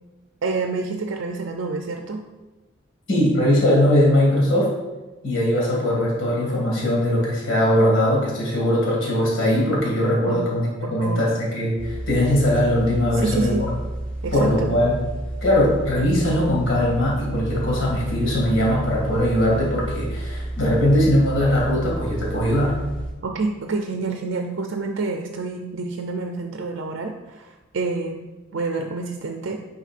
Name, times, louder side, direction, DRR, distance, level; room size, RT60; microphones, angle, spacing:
voice 1, 0.4-2.2 10.3-10.4 10.8-11.2 13.1-13.7 14.2-14.7 23.2-29.6, right 3 dB, 65° right, 3 dB, 0.5 m, -28 dB
voice 2, 3.1-4.7 5.2-13.7 14.3-15.0 15.4-22.8, left 1 dB, 70° left, -4 dB, 2.1 m, -20 dB
Home Ambience, 11.8-23.1, right 1 dB, 5° left, 1.3 m, -31 dB
9.0 x 5.4 x 2.5 m, 1.2 s
head